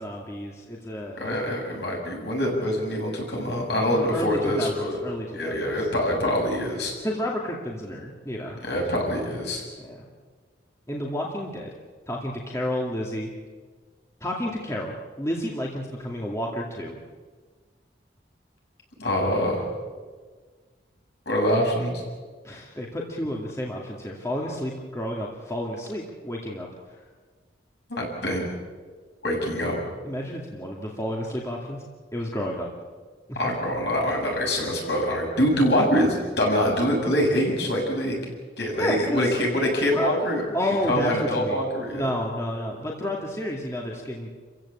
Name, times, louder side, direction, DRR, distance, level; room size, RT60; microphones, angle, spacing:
voice 1, 0.0-1.6 3.9-5.9 7.0-8.6 9.8-10.1 10.9-11.7 12.1-13.3 14.2-17.0 22.4-26.7 30.0-31.8 32.1-32.7 33.3-33.5 38.8-39.3 39.9-40.1 40.5-44.3, equal, 15° left, -2 dB, 2.3 m, -31 dB
voice 2, 1.2-5.0 5.4-6.9 8.6-9.6 19.0-19.7 21.3-22.0 27.9-28.5 29.2-29.8 33.4-38.2 38.6-40.4 40.9-42.1, equal, 65° left, -1 dB, 7.8 m, -24 dB
29.5 x 15.5 x 8.7 m, 1.5 s
head